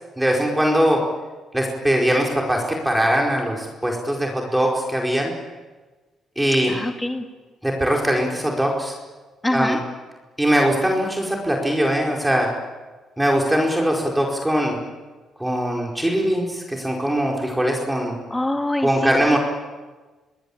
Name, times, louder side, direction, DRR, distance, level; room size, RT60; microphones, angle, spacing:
voice 1, 0.2-1.0 1.5-5.3 6.4-6.7 7.6-8.9 9.5-9.8 10.4-12.5 13.2-14.8 15.4-18.2 18.8-19.4, equal, 10° right, -1 dB, 4.8 m, -21 dB
voice 2, 6.7-7.3 9.4-9.8 18.3-19.4, left 1 dB, 10° left, 4 dB, 2.3 m, -25 dB
26.0 x 20.0 x 8.8 m, 1.3 s
cardioid pair, 90°, 0 cm